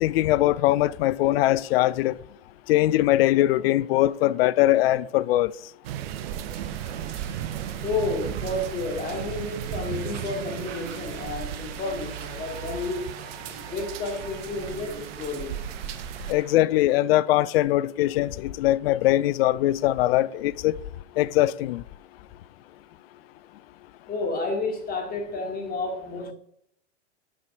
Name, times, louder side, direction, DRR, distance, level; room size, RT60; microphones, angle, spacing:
voice 1, 0.0-2.2 2.7-5.5 16.3-20.7 21.2-21.8, left 15 dB, 55° left, 0.5 m, -21 dB
sound 1, 5.8-16.3, right 11 dB, 55° right, 0.8 m, -35 dB
sound 2, 6.5-16.6, right 6 dB, 80° right, 1.3 m, -46 dB
voice 2, 7.8-13.1 13.7-15.7 24.1-26.3, left 3 dB, 25° left, 2.3 m, -31 dB
sound 3, 9.0-16.0, right 6 dB, 25° right, 0.9 m, -45 dB
7.6 x 5.9 x 4.9 m
hypercardioid pair, 110°, 36 cm